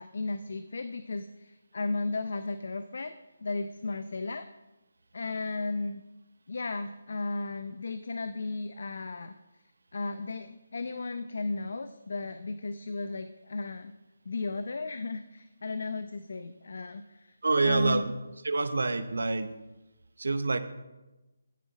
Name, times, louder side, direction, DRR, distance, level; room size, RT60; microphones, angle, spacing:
voice 1, 0.0-4.5 5.1-6.0 6.5-9.3 9.9-13.9 14.3-17.4 17.6-18.0, left 3 dB, 65° left, 10 dB, 0.7 m, -35 dB
voice 2, 17.4-18.1 18.4-19.6 20.2-20.6, right 3 dB, 80° right, 10 dB, 0.9 m, -27 dB
16.0 x 7.4 x 4.1 m, 1.1 s
figure-of-eight pair, 165°, 0 cm